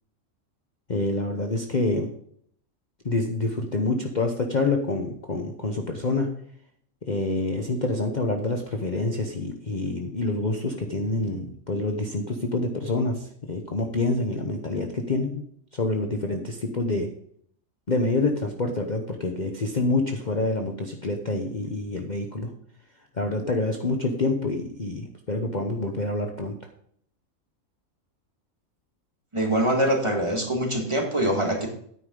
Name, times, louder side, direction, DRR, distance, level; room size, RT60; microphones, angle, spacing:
voice 1, 0.9-2.1 3.0-6.3 7.1-15.4 15.7-17.1 17.9-22.5 23.2-26.5, left 2 dB, 35° left, 3 dB, 1.0 m, -27 dB
voice 2, 29.3-31.7, right 1 dB, 20° right, 1 dB, 1.8 m, -24 dB
9.6 x 9.3 x 3.8 m, 0.64 s
omnidirectional pair, 1.5 m